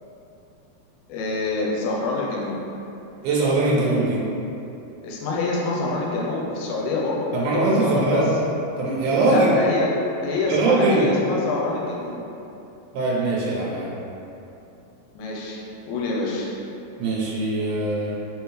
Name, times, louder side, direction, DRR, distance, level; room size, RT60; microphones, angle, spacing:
voice 1, 1.1-2.6 5.0-8.3 9.2-9.9 10.2-12.2 15.2-16.5, left 3 dB, 90° left, -3 dB, 2.1 m, -26 dB
voice 2, 3.2-4.2 7.3-8.3 8.8-9.5 10.5-11.1 12.9-13.9 17.0-18.1, right 2 dB, 90° right, -6 dB, 2.2 m, -21 dB
4.7 x 3.4 x 3.1 m, 2.8 s
omnidirectional pair, 3.4 m